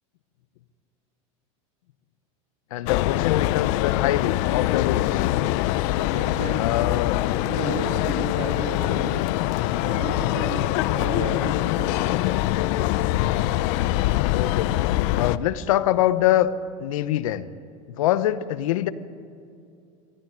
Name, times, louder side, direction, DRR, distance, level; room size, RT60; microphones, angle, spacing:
voice 1, 2.7-5.3 6.6-7.2 14.3-16.5 16.8-17.5 18.0-18.9, left 13 dB, 85° left, 13 dB, 1.0 m, -24 dB
sound 1, 2.9-15.4, left 15 dB, 65° left, 0.7 m, -23 dB
voice 2, 6.1-6.8 7.4-9.2 9.8-12.3, right 3 dB, 45° right, 0 dB, 3.0 m, -33 dB
20.0 x 14.0 x 9.3 m, 2.4 s
supercardioid pair, 125°, 17 cm